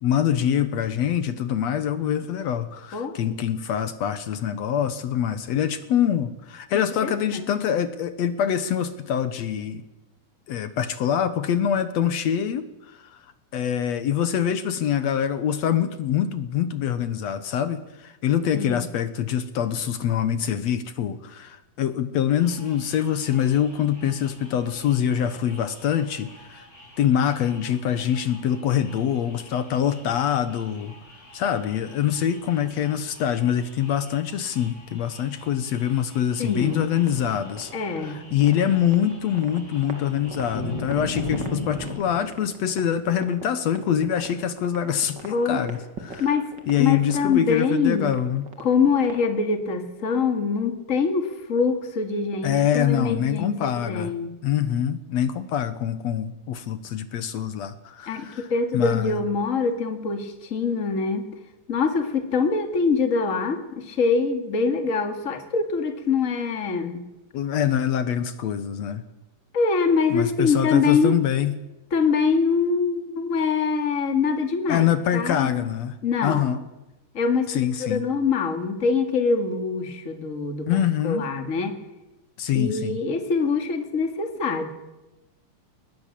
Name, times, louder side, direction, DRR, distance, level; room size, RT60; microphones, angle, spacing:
voice 1, 0.0-9.8 10.5-13.2 13.5-26.6 27.0-30.9 31.3-37.7 38.0-45.8 46.0-46.3 46.7-48.5 52.4-54.1 54.4-58.5 58.7-59.2 67.3-69.0 70.1-71.6 74.7-76.0 76.2-76.6 77.5-78.0 80.7-81.2 82.4-83.0, left 9 dB, 65° left, 12 dB, 1.8 m, -24 dB
voice 2, 6.7-7.5 18.5-18.9 36.4-36.9 37.7-38.3 45.3-45.6 46.2-48.1 48.6-54.4 58.1-61.3 61.7-67.0 69.5-71.2 71.9-75.7 76.0-76.5 77.1-81.8 82.5-84.7, left 5 dB, 25° left, 7 dB, 2.0 m, -24 dB
sound 1, 22.3-41.9, left 1 dB, 10° left, 6.2 m, -41 dB
sound 2, 36.6-49.4, right 4 dB, 35° right, 2.6 m, -42 dB
21.5 x 19.0 x 7.5 m, 0.99 s
omnidirectional pair, 4.1 m